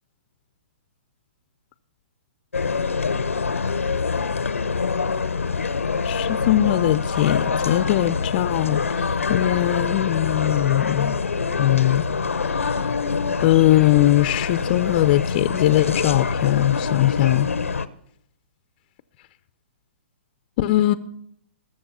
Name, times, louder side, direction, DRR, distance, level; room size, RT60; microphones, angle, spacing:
sound 1, 2.5-17.9, left 5 dB, 90° left, 0.8 m, -25 dB
voice 1, 6.0-8.8 9.3-11.2 11.6-12.1 12.5-12.9 13.4-17.5 20.6-20.9, left 15 dB, 40° left, 0.6 m, -20 dB
20.5 x 7.1 x 5.7 m
hypercardioid pair, 130°, 7 cm